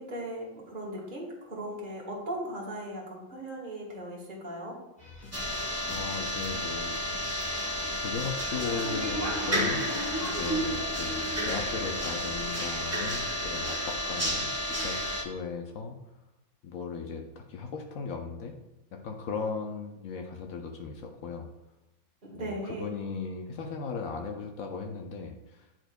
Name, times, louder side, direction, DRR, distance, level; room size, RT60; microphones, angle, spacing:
voice 1, 0.0-4.8 22.2-22.9, right 1 dB, 35° right, -3 dB, 1.6 m, -38 dB
sound 1, 5.0-12.5, left 3 dB, 40° left, 1.2 m, -48 dB
sound 2, 5.3-15.2, equal, 15° right, 0.7 m, -31 dB
voice 2, 5.9-7.2 8.0-9.9 10.2-16.0 16.6-18.5 18.9-21.5 22.3-25.7, left 5 dB, 75° left, 2 dB, 1.1 m, -37 dB
10.0 x 4.4 x 2.2 m, 0.94 s
omnidirectional pair, 1.5 m